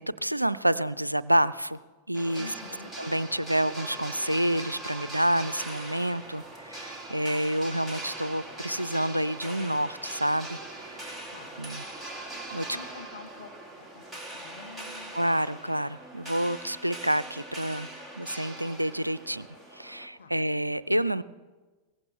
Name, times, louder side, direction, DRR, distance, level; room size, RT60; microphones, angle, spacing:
voice 1, 0.0-1.8 2.1-2.5 3.0-10.6 10.8-11.2 11.6-11.8 12.5-12.7 15.1-17.9 18.2-19.5 19.7-21.2, right 1 dB, 90° right, 18 dB, 0.4 m, -28 dB
sound 1, 2.1-20.1, right 2 dB, ahead, 2.7 m, -41 dB
voice 2, 2.4-2.9 11.3-11.5 12.7-13.5 13.8-14.1 14.3-15.1 20.2-20.3, left 4 dB, 70° left, 3 dB, 1.5 m, -47 dB
22.5 x 18.0 x 3.3 m, 1.3 s
figure-of-eight pair, 90°, 0 cm